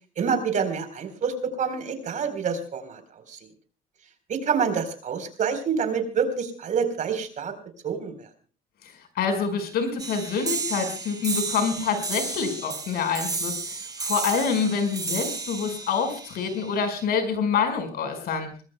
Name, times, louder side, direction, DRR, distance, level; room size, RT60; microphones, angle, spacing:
voice 1, 0.2-3.0 3.3-3.4 4.3-7.5 7.8-8.3, right 6 dB, 50° right, 8 dB, 4.1 m, -27 dB
voice 2, 9.2-18.5, left 6 dB, 70° left, 7 dB, 5.3 m, -26 dB
sound 1, 10.0-17.0, right 4 dB, 20° right, 2.0 m, -33 dB
25.5 x 20.0 x 2.3 m, 0.39 s
cardioid pair, 110°, 17 cm